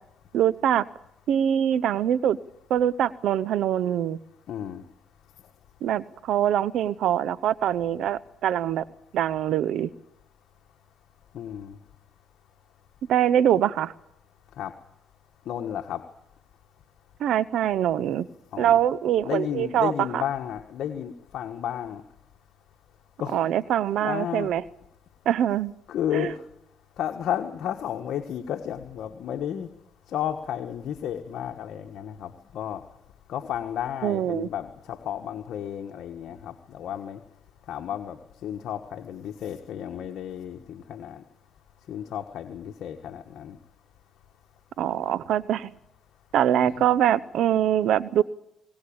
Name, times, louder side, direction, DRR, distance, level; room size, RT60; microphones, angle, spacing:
voice 1, 0.3-0.9 1.3-2.4 2.7-4.2 5.8-8.8 9.1-9.9 13.1-13.9 17.2-18.3 18.6-20.2 23.3-24.6 25.3-25.7 26.1-26.3 34.0-34.5 44.8-45.7 46.3-48.2, right 10 dB, 75° right, 19 dB, 0.8 m, -23 dB
voice 2, 4.5-4.8 11.3-11.8 14.6-14.7 15.5-16.0 18.5-18.8 19.2-22.0 23.2-23.5 24.0-24.5 25.9-26.4 27.0-29.7 30.1-32.8 33.3-37.2 37.7-41.2 41.9-43.6 46.6-46.8, left 10 dB, 75° left, 4 dB, 1.4 m, -32 dB
21.5 x 19.0 x 8.8 m, 0.82 s
cardioid pair, 90°, 0 cm